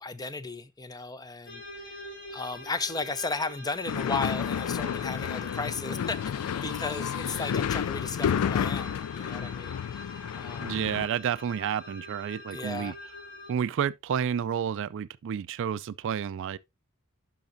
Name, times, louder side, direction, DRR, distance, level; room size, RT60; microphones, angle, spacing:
voice 1, 0.0-1.6 2.3-10.8 12.5-13.0, left 3 dB, 20° left, 0.5 m, -35 dB
sound 1, 1.5-13.5, left 1 dB, 50° left, 3.2 m, -45 dB
sound 2, 3.9-11.1, left 8 dB, 90° left, 0.3 m, -31 dB
voice 2, 10.6-12.9 13.5-16.6, right 8 dB, 60° right, 0.3 m, -30 dB
10.5 x 5.9 x 2.6 m
head